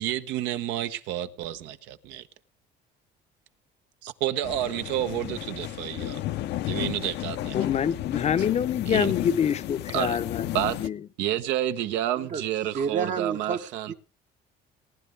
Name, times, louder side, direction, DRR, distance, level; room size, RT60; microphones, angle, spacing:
voice 1, 0.0-2.3 4.0-6.2 6.7-7.6 8.9-9.1 9.9-10.2 10.5-10.8 11.2-13.9, right 12 dB, 85° right, 1.0 m, -29 dB
sound 1, 4.4-10.9, left 14 dB, 70° left, 0.7 m, -33 dB
voice 2, 7.5-11.0, left 8 dB, 40° left, 0.7 m, -26 dB
voice 3, 12.7-13.9, right 6 dB, 45° right, 0.9 m, -30 dB
19.5 x 11.0 x 3.4 m
cardioid pair, 115°, 18 cm